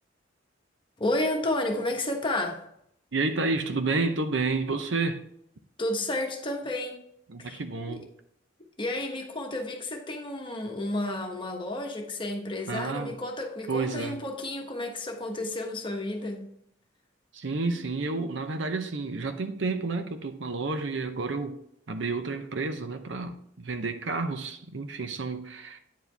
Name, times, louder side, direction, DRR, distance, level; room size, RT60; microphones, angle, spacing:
voice 1, 1.0-2.6 5.8-7.0 7.4-7.6 7.9-8.0 8.8-16.5, left 1 dB, 25° left, 1.2 m, -31 dB
voice 2, 3.1-5.3 7.3-8.1 12.7-13.2 13.7-14.2 17.3-21.6 21.9-25.8, right 3 dB, 65° right, 0.7 m, -30 dB
9.4 x 4.8 x 3.4 m
head